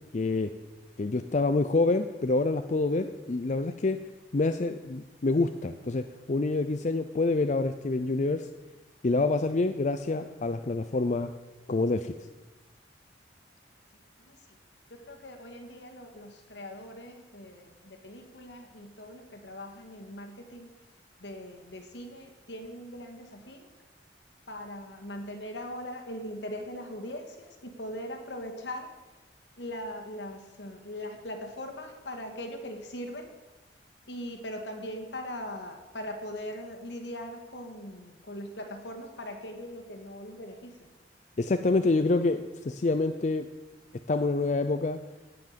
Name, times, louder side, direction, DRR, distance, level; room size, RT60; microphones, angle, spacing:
voice 1, 0.1-0.5 1.0-4.0 4.3-8.5 9.0-11.3 11.7-12.1 41.4-43.5 44.1-45.0, left 3 dB, 40° left, 8 dB, 0.5 m, -27 dB
voice 2, 14.9-20.7 21.2-23.7 24.5-28.9 29.6-33.3 34.1-40.9, left 1 dB, 80° left, 3 dB, 2.0 m, -40 dB
17.0 x 6.0 x 6.8 m, 1.1 s
head